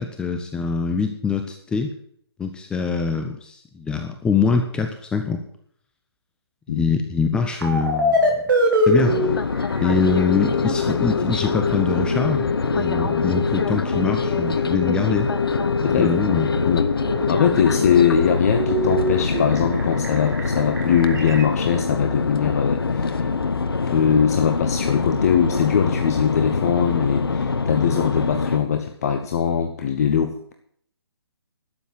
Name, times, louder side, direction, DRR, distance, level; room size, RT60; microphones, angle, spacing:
voice 1, 0.0-1.9 2.4-5.4 6.7-8.3 8.9-9.3 9.8-15.3 16.0-16.5, left 5 dB, 5° left, 6 dB, 0.7 m, -24 dB
sound 1, 7.6-9.3 9.7-21.4, left 1 dB, 50° right, 3.9 m, -24 dB
sound 2, 9.0-28.6, left 4 dB, 60° left, 1.1 m, -24 dB
voice 2, 15.8-16.9 17.3-23.3 23.9-30.5, left 8 dB, 35° left, 7 dB, 1.1 m, -21 dB
12.5 x 8.1 x 7.9 m, 0.65 s
figure-of-eight pair, 140°, 14 cm